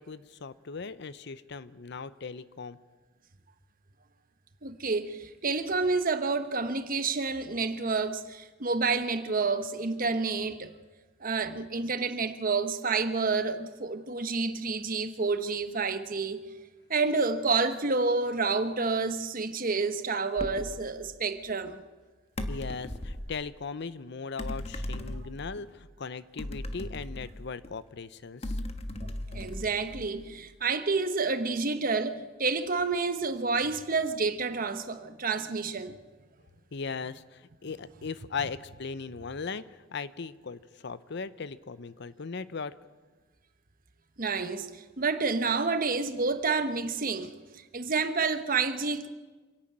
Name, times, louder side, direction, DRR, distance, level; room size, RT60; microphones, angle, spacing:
voice 1, 0.0-2.8 22.5-28.6 36.7-42.8, left 5 dB, 60° left, 0.6 m, -38 dB
voice 2, 4.6-10.7 11.2-16.4 16.9-21.8 29.3-35.9 44.2-44.7 45.0-47.3 47.7-49.1, right 4 dB, 45° right, 1.1 m, -29 dB
sound 1, 20.4-20.8 22.4-23.3 24.4-25.6 26.4-27.7 28.4-30.3, left 1 dB, 30° left, 1.3 m, -37 dB
26.0 x 11.5 x 8.8 m
head